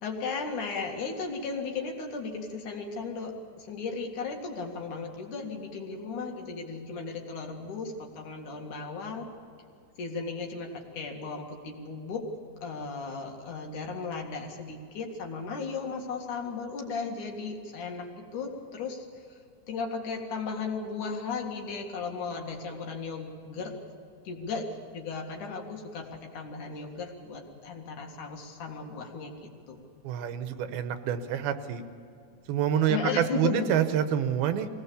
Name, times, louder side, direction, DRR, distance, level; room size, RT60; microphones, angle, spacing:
voice 1, 0.0-9.3 10.0-12.2 12.6-19.4 19.7-23.8 24.2-24.7 24.9-29.3 29.7-29.8 32.9-33.7, left 4 dB, 60° left, 1 dB, 3.3 m, -35 dB
voice 2, 30.0-31.8 32.5-34.7, right 9 dB, 85° right, 9 dB, 2.9 m, -27 dB
24.0 x 18.0 x 7.1 m, 2.4 s
omnidirectional pair, 4.3 m